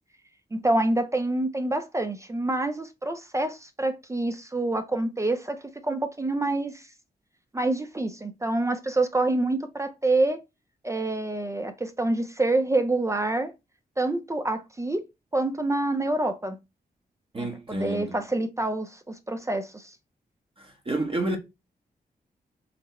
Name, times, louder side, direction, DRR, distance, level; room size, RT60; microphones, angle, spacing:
voice 1, 0.5-6.9 7.5-10.4 10.8-13.5 14.0-15.0 15.3-16.6 17.4-20.0, right 2 dB, 20° right, 0.4 m, -27 dB
voice 2, 17.3-18.2 20.6-21.4, right 2 dB, 35° right, 1.0 m, -30 dB
4.0 x 2.0 x 4.1 m
cardioid pair, 85°, 16 cm